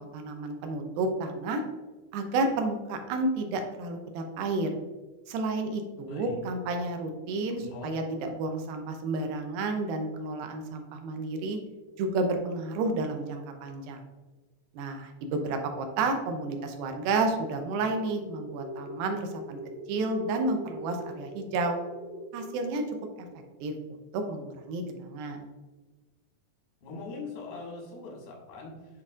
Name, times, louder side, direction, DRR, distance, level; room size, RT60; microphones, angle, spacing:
voice 1, 0.0-1.6 2.1-4.8 5.3-11.6 12.0-14.0 14.7-19.6 19.9-21.8 22.3-22.8 23.6-23.7 24.1-25.5, right 2 dB, 80° right, 4 dB, 2.5 m, -31 dB
voice 2, 7.6-7.9 26.8-29.0, left 3 dB, 85° left, -2 dB, 3.4 m, -42 dB
sound 1, 17.6-22.7, equal, 70° left, 0.9 m, -42 dB
9.8 x 4.0 x 2.4 m, 1.2 s
omnidirectional pair, 4.3 m